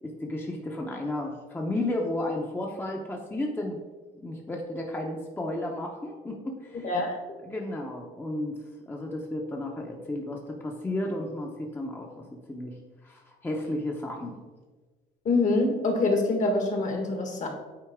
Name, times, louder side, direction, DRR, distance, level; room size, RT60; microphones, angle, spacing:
voice 1, 0.0-3.8 4.2-6.9 7.4-12.8 13.0-14.4, left 1 dB, 10° left, 0 dB, 0.8 m, -33 dB
voice 2, 6.8-7.2 15.2-17.5, left 2 dB, 45° left, 3 dB, 1.4 m, -25 dB
8.8 x 4.2 x 3.6 m, 1.3 s
cardioid pair, 110°, 17 cm